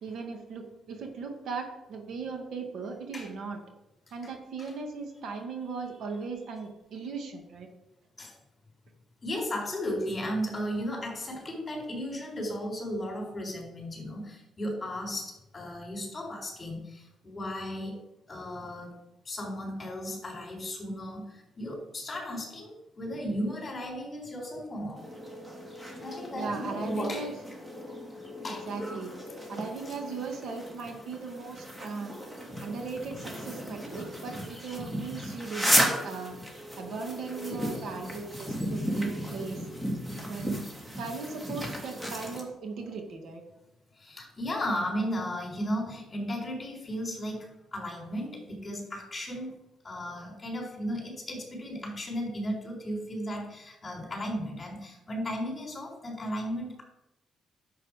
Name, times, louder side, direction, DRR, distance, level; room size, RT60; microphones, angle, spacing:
voice 1, 0.0-3.6 4.1-7.7 26.3-27.4 28.5-29.1 29.5-32.1 32.6-36.3 36.8-39.6 40.3-40.7 41.0-43.4, right 4 dB, 70° right, 3 dB, 1.9 m, -38 dB
voice 2, 9.2-18.0 18.3-19.0 19.2-25.0 26.0-27.3 28.4-28.7 29.9-30.0 38.4-38.5 39.2-39.4 44.0-49.5 49.8-56.8, equal, 25° left, 1 dB, 4.4 m, -35 dB
sound 1, 25.0-42.4, equal, 15° right, 3.0 m, -34 dB
10.5 x 7.6 x 5.0 m, 0.90 s
cardioid pair, 90°, 0 cm